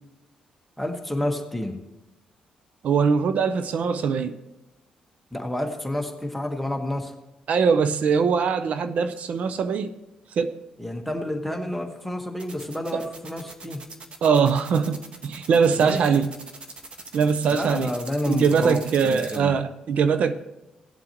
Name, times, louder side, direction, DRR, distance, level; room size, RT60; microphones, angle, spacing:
voice 1, 0.8-1.8 5.3-7.1 10.8-13.8 15.8-16.1 17.5-19.5, left 1 dB, 5° left, 1.4 m, -29 dB
voice 2, 2.8-4.4 7.5-9.9 10.4-10.6 12.9-13.0 14.2-16.3 17.1-17.9 18.3-20.3, right 6 dB, 65° right, 0.6 m, -22 dB
sound 1, 12.4-19.4, right 3 dB, 45° right, 1.4 m, -41 dB
17.5 x 7.6 x 3.0 m
cardioid pair, 75°, 2 cm